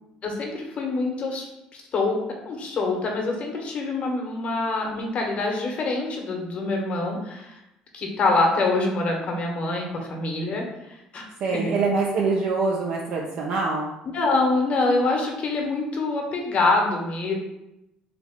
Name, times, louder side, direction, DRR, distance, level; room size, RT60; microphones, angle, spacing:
voice 1, 0.2-1.5 1.9-7.6 7.9-11.8 14.0-17.3, left 3 dB, 45° left, 1 dB, 1.1 m, -25 dB
voice 2, 11.4-13.9, right 4 dB, 60° right, -2 dB, 0.6 m, -24 dB
3.4 x 2.9 x 3.6 m, 0.90 s
hypercardioid pair, 65°, 3 cm